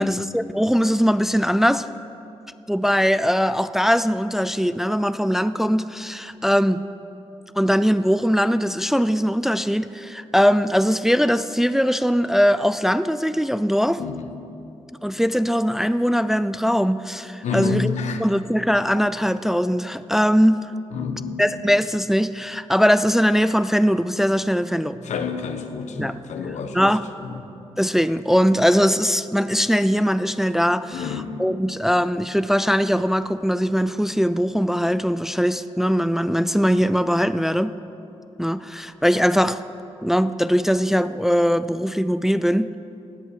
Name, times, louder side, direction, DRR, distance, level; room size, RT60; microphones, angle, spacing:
voice 1, 0.0-1.9 2.7-6.8 7.6-14.0 15.0-17.9 18.2-20.6 21.4-25.0 26.0-26.2 26.7-27.0 27.8-31.0 31.4-37.7 38.4-39.6 40.0-42.7, equal, 5° right, 13 dB, 0.4 m, -20 dB
voice 2, 14.0-14.3 17.4-18.2 20.9-21.4 24.9-26.9 27.2-27.5 30.9-31.4, left 5 dB, 80° left, 7 dB, 1.1 m, -29 dB
17.0 x 8.2 x 6.5 m, 2.8 s
cardioid pair, 65°, 12 cm